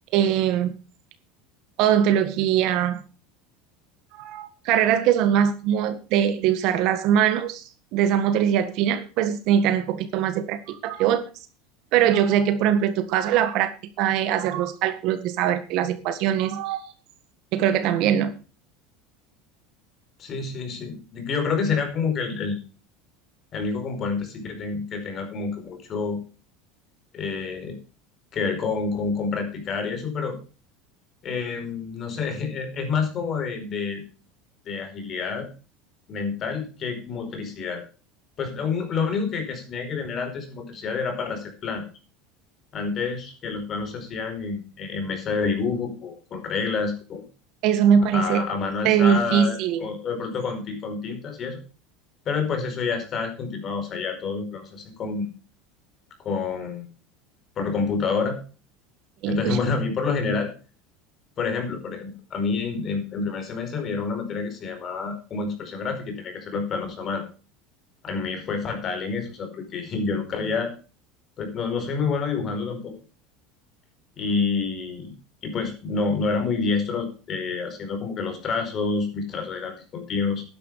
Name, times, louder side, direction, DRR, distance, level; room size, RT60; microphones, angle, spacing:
voice 1, 0.1-0.7 1.8-3.0 4.1-7.6 7.9-11.2 11.9-13.7 14.0-16.9 17.5-18.3 47.6-48.4 48.8-49.8 59.2-59.6, right 9 dB, 50° right, 11 dB, 1.7 m, -22 dB
voice 2, 20.2-22.6 23.5-26.2 27.1-27.8 28.3-30.4 31.2-34.0 34.6-35.5 36.1-37.8 38.4-41.8 42.7-47.2 48.1-51.6 52.2-55.3 56.2-56.9 57.6-58.4 59.3-60.5 61.4-67.2 68.0-70.7 71.4-72.9 74.2-75.1 75.4-80.4, left 4 dB, 30° left, 6 dB, 4.8 m, -28 dB
12.0 x 10.5 x 4.9 m, 0.34 s
supercardioid pair, 155°, 0 cm